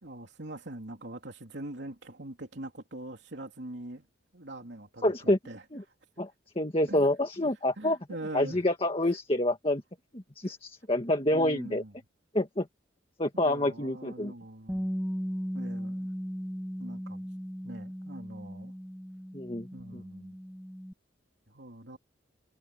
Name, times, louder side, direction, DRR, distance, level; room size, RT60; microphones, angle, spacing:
voice 1, 0.0-4.1 4.3-5.6 6.9-7.1 7.8-8.6 10.4-10.5 11.3-11.9 13.3-14.9 15.5-16.1 16.8-17.3 17.6-18.7 19.7-20.4 21.5-22.0, right 1 dB, 60° right, 3.3 m, -43 dB
voice 2, 5.0-5.4 5.7-5.8 6.2-6.3 6.6-8.0 8.3-9.8 10.1-11.8 12.3-12.7 13.2-14.3 19.3-19.7 19.9-20.0, left 1 dB, 30° left, 1.8 m, -27 dB
Bass guitar, 14.7-20.9, equal, ahead, 7.1 m, -37 dB
head